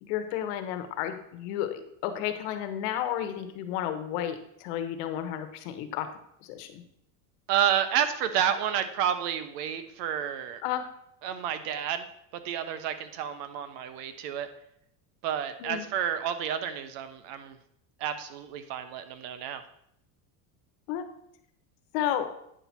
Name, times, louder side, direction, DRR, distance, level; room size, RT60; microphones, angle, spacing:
voice 1, 0.0-6.1 6.4-6.8 10.6-10.9 15.6-15.8 20.9-21.1 21.9-22.3, left 10 dB, 70° left, 9 dB, 1.2 m, -32 dB
voice 2, 7.5-10.6 11.2-12.0 12.3-14.5 15.2-17.6 18.0-19.6, right 9 dB, 80° right, 10 dB, 1.1 m, -30 dB
9.0 x 5.9 x 4.3 m, 0.73 s
cardioid pair, 140°, 48 cm